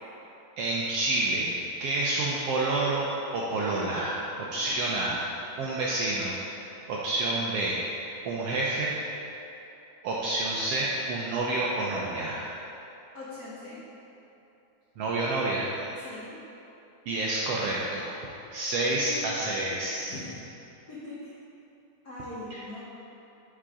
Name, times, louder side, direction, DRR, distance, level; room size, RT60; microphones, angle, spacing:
voice 1, 0.6-1.5 1.8-3.1 3.3-5.2 5.6-8.9 10.0-12.5 15.0-15.7 17.1-18.2 18.5-20.1 22.5-22.6, right 2 dB, 80° right, -4 dB, 1.4 m, -29 dB
voice 2, 4.5-5.2 13.1-13.8 15.9-16.3 18.9-19.6 20.1-20.4 20.9-21.3 22.0-22.8, left 2 dB, 85° left, -9 dB, 0.8 m, -42 dB
9.9 x 5.7 x 3.7 m, 2.9 s
omnidirectional pair, 3.5 m